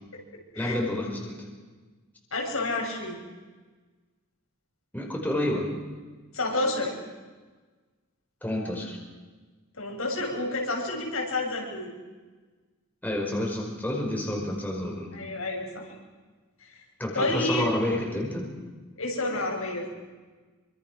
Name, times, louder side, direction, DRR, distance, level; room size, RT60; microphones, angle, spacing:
voice 1, 0.6-1.3 4.9-5.7 8.4-9.0 13.0-15.1 17.0-18.5, left 1 dB, 10° left, -1 dB, 5.3 m, -29 dB
voice 2, 2.3-3.2 6.3-6.9 9.7-11.9 15.1-15.9 17.1-17.6 19.0-19.9, left 2 dB, 75° left, 0 dB, 7.1 m, -29 dB
27.5 x 25.0 x 6.4 m, 1.3 s
head